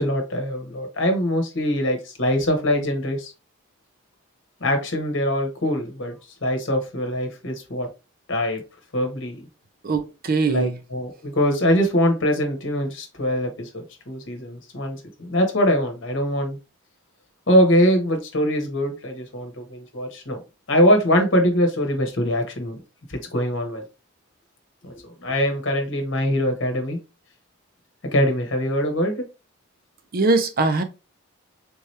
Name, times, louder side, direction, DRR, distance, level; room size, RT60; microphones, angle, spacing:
voice 1, 0.0-3.3 4.6-7.9 8.3-8.6 8.9-9.5 10.5-13.7 14.1-16.6 17.5-20.4 20.7-22.8 23.1-23.8 24.8-27.0 28.1-29.2, equal, 55° left, 1.1 m, -23 dB
voice 2, 9.8-10.8 30.1-30.8, right 3 dB, 40° right, 0.5 m, -21 dB
3.5 x 2.9 x 3.2 m
head